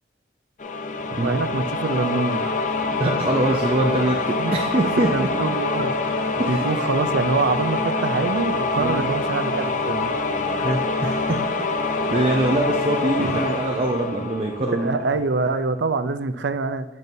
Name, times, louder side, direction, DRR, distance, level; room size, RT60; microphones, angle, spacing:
sound 1, 0.6-15.2, left 3 dB, 45° left, 0.5 m, -25 dB
voice 1, 1.2-2.6 4.4-4.6 5.0-6.1 6.5-10.1 13.2-13.4 14.7-16.9, right 4 dB, 85° right, 10 dB, 0.5 m, -25 dB
voice 2, 3.0-5.3 6.4-6.6 8.8-9.1 10.6-11.5 12.1-15.0, right 1 dB, 35° right, 1 dB, 0.5 m, -23 dB
9.1 x 5.4 x 2.7 m, 0.91 s
head